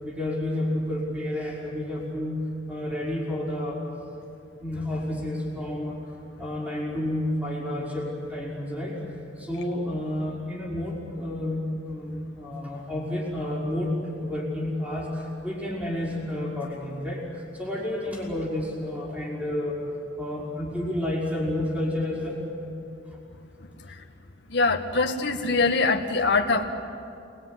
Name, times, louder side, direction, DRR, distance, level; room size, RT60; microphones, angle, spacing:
voice 1, 0.0-2.4 2.7-3.8 4.6-6.0 6.4-9.0 9.4-19.8 20.2-22.4, left 1 dB, 10° right, -4 dB, 5.6 m, -30 dB
voice 2, 24.5-26.6, left 3 dB, 65° left, 2 dB, 1.9 m, -23 dB
28.5 x 21.0 x 9.6 m, 2.6 s
head